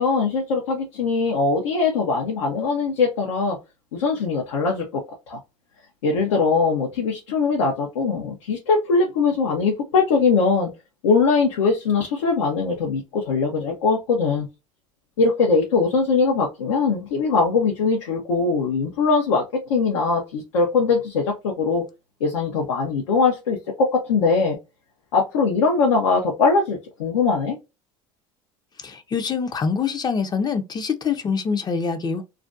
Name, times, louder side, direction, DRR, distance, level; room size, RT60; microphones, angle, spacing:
voice 1, 0.0-3.6 3.9-5.4 6.0-10.7 11.0-14.5 15.2-21.8 22.2-24.6 25.1-27.6, left 4 dB, 90° left, 0.6 m, -21 dB
voice 2, 28.8-32.2, left 5 dB, 25° left, 0.4 m, -25 dB
2.4 x 2.2 x 2.4 m
hypercardioid pair, 80°, 15 cm